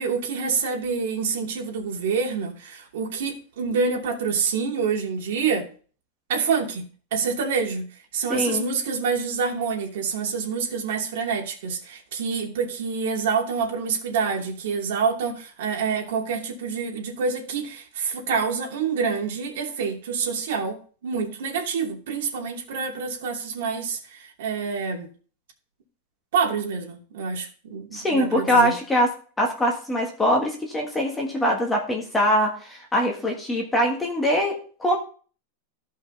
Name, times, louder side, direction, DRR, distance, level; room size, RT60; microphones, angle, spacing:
voice 1, 0.0-5.7 6.3-6.8 7.1-7.9 8.1-25.1 26.3-28.7, right 5 dB, 60° right, 2.8 m, -27 dB
voice 2, 8.3-8.7 27.9-29.1 29.4-35.0, equal, 5° left, 1.6 m, -23 dB
15.0 x 5.6 x 4.0 m
supercardioid pair, 180°, 0 cm